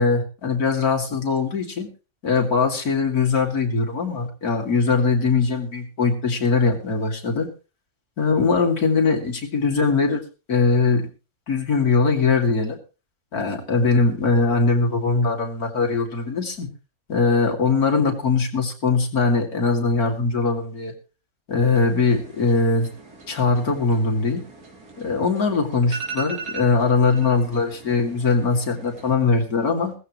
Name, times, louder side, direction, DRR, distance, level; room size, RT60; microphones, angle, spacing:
voice 1, 0.0-1.9 2.2-7.5 8.2-10.2 10.5-11.0 11.5-12.8 13.3-16.7 17.1-20.9 21.5-22.9 23.3-24.4 25.0-29.9, left 4 dB, 75° left, 3 dB, 3.1 m, -21 dB
sound 1, 21.6-29.1, right 4 dB, 85° right, 3.7 m, -40 dB
18.0 x 15.0 x 3.1 m, 0.32 s
omnidirectional pair, 1.6 m